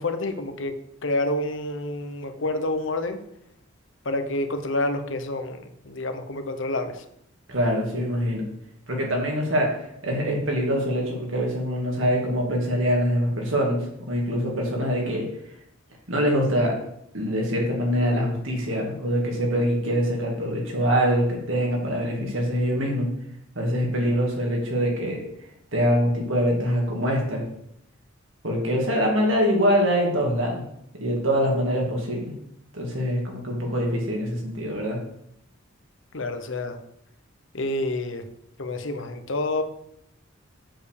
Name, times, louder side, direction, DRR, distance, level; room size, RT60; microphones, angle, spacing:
voice 1, 0.0-3.2 4.0-7.0 36.1-36.8 37.5-38.3 38.6-39.6, left 2 dB, 65° left, 8 dB, 1.0 m, -28 dB
voice 2, 7.5-8.4 8.9-15.2 16.1-16.7 17.1-23.1 23.5-25.2 25.7-27.4 28.4-30.6 31.0-32.3 32.7-35.0, equal, 70° right, -1 dB, 2.6 m, -24 dB
7.5 x 5.2 x 6.8 m, 0.76 s
head